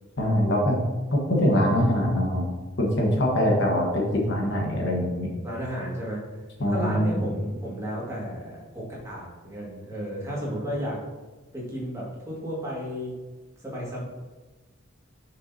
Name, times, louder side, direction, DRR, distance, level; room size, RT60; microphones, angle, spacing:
voice 1, 0.2-0.8 1.1-2.5 2.8-5.3 6.6-7.2, equal, 55° left, -1 dB, 1.3 m, -23 dB
voice 2, 5.4-6.2 6.7-11.0 11.5-13.1 13.6-14.0, equal, 15° right, -6 dB, 1.8 m, -33 dB
6.6 x 6.2 x 2.7 m, 1.2 s
head